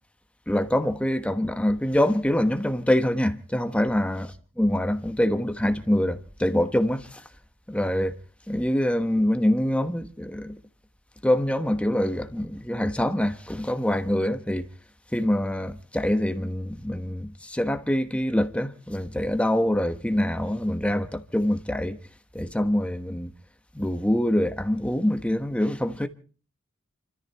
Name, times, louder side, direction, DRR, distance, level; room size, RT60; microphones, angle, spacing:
voice 1, 0.5-4.3 4.6-7.1 7.7-8.1 8.5-10.5 11.2-14.7 15.1-22.0 22.3-23.3 23.7-26.1, left 1 dB, 5° left, 1.2 m, -25 dB
29.5 x 14.0 x 3.4 m
head